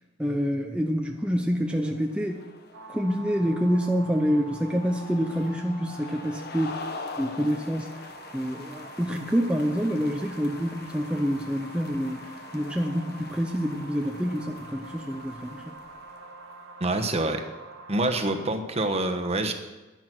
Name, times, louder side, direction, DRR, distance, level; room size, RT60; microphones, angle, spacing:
voice 1, 0.2-2.4 2.9-6.7 7.2-7.9 8.3-15.7, equal, 5° right, 2 dB, 0.7 m, -27 dB
sound 1, 1.1-16.8, left 3 dB, 55° left, 1.2 m, -44 dB
sound 2, 2.7-18.5, right 2 dB, 70° right, 1.3 m, -46 dB
voice 2, 16.8-17.4 17.9-19.5, right 2 dB, 35° right, 6 dB, 1.2 m, -26 dB
11.0 x 11.0 x 6.1 m, 1.2 s
head